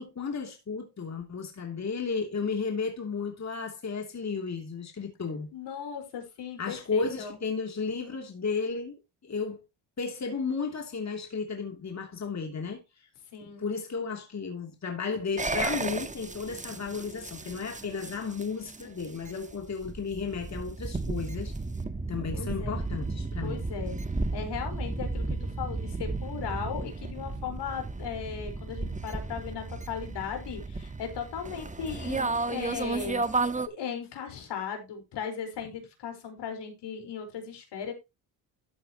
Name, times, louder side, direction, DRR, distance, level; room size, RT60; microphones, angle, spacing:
voice 1, 0.0-5.5 6.6-9.0 9.2-9.6 10.0-12.8 13.4-21.5 22.1-23.7, left 5 dB, 40° left, 2.9 m, -33 dB
voice 2, 5.5-7.4 13.3-13.6 22.3-22.7 23.4-24.0 24.3-33.2 33.7-37.9, left 7 dB, 75° left, 4.5 m, -37 dB
sound 1, 15.4-33.7, right 3 dB, 15° right, 1.3 m, -34 dB
13.5 x 8.0 x 2.9 m
supercardioid pair, 65°, 42 cm